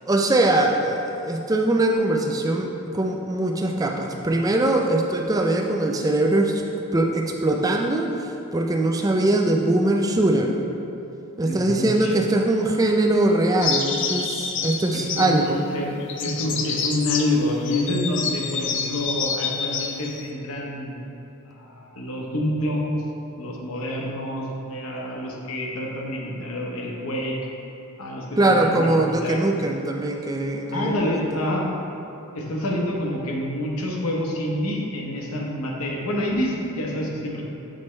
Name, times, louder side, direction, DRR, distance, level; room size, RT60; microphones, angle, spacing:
voice 1, 0.1-6.6 6.9-10.6 11.4-15.6 28.4-31.4, right 2 dB, 15° right, 2 dB, 0.3 m, -22 dB
voice 2, 11.4-12.1 14.9-15.4 15.7-21.0 21.5-23.0 23.4-27.4 28.0-29.4 30.7-31.7 32.3-37.4, left 1 dB, 75° left, -1 dB, 0.9 m, -27 dB
sound 1, 13.6-15.6 16.0-17.3 17.7-20.2, left 6 dB, 55° left, 0.4 m, -28 dB
7.7 x 4.3 x 3.2 m, 2.8 s
head